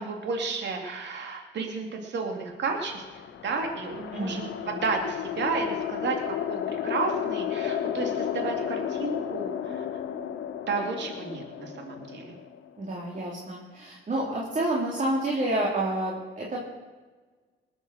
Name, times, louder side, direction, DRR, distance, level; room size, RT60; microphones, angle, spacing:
voice 1, 0.0-3.0 3.4-9.9 10.7-12.4, right 4 dB, 60° right, 3 dB, 2.8 m, -32 dB
sound 1, 2.7-13.2, left 9 dB, 75° left, 1.1 m, -33 dB
voice 2, 4.1-4.5 12.8-16.6, right 1 dB, 40° right, -3 dB, 3.3 m, -29 dB
20.0 x 8.2 x 6.7 m, 1.4 s
cardioid pair, 90°, 20 cm